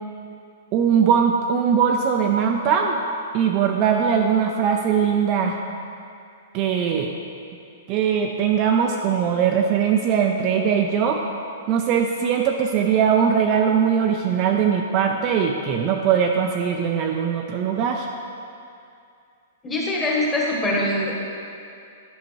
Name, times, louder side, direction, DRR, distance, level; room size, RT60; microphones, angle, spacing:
voice 1, 0.7-3.0 3.3-5.6 6.5-7.1 7.9-11.2 11.7-18.1, right 7 dB, 30° right, 2 dB, 0.4 m, -20 dB
voice 2, 19.6-21.2, left 1 dB, 10° left, -4 dB, 1.1 m, -23 dB
10.5 x 5.4 x 3.1 m, 2.5 s
hypercardioid pair, 165°, 0 cm